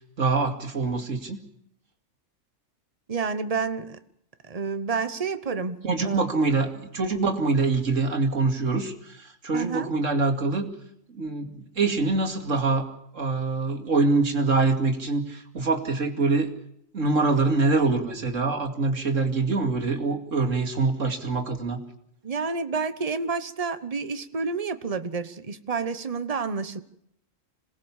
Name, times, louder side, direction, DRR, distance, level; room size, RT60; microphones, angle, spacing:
voice 1, 0.2-1.4 5.8-10.7 11.1-12.8 13.1-16.5 16.9-21.8, right 3 dB, 70° right, 2.7 m, -24 dB
voice 2, 3.1-4.0 4.5-6.2 9.5-9.9 22.2-26.8, right 4 dB, 30° right, 1.1 m, -29 dB
26.5 x 18.5 x 7.3 m
omnidirectional pair, 1.3 m